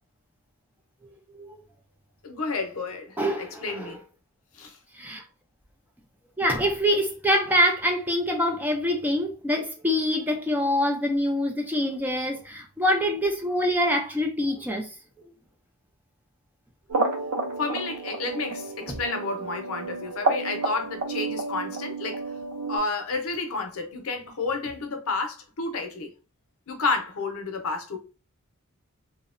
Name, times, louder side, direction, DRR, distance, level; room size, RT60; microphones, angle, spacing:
voice 1, 2.2-4.0 4.5-4.8 17.6-22.2 22.7-26.1 26.7-28.0, left 3 dB, 70° left, 0.6 m, -31 dB
voice 2, 3.2-3.9 4.9-5.2 6.4-14.9, equal, 10° right, 0.3 m, -25 dB
sound 1, 16.9-22.8, right 3 dB, 90° right, 0.6 m, -30 dB
2.8 x 2.0 x 2.4 m
head